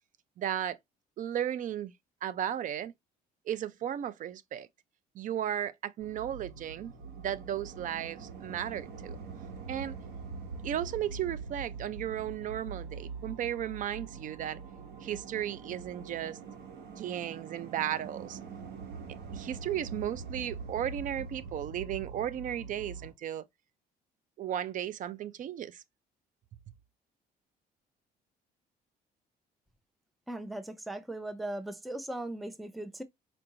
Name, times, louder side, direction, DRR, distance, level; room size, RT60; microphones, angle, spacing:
voice 1, 0.4-0.8 1.2-1.9 2.2-2.9 3.5-4.7 5.2-6.9 7.2-9.2 9.7-10.0 10.6-14.6 15.0-16.4 17.0-18.4 19.3-23.4 24.4-25.8, right 10 dB, 50° right, 0.5 m, -35 dB
sound 1, 6.0-23.1, right 5 dB, 80° right, 1.2 m, -43 dB
voice 2, 30.3-33.0, right 1 dB, ahead, 0.5 m, -38 dB
4.5 x 2.6 x 2.8 m
cardioid pair, 110°, 17 cm